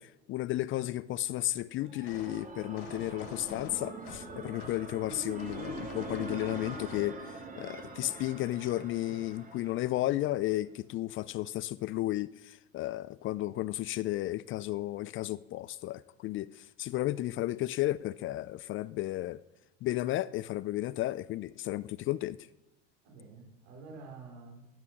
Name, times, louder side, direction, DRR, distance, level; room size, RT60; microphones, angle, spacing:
voice 1, 0.0-19.4 19.8-22.4, left 15 dB, 40° left, 0.4 m, -33 dB
sound 1, 1.5-10.4, right 3 dB, 25° right, 2.5 m, -44 dB
sound 2, 2.1-2.4 2.8-4.3 4.6-4.8 5.1-7.1, left 11 dB, 60° left, 1.2 m, -48 dB
voice 2, 23.0-24.7, right 4 dB, 65° right, 4.7 m, -49 dB
10.5 x 9.7 x 6.3 m
hypercardioid pair, 85°, 33 cm